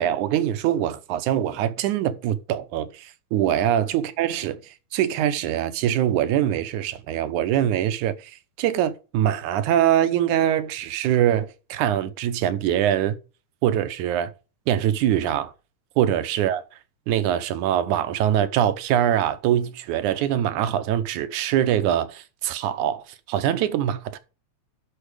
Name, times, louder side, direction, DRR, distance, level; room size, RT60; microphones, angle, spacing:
voice 1, 0.0-4.6 4.9-8.3 8.6-13.2 13.6-14.3 14.7-15.5 16.0-16.6 17.1-24.2, right 11 dB, 80° right, 2.3 m, -23 dB
11.5 x 4.8 x 5.0 m
omnidirectional pair, 3.5 m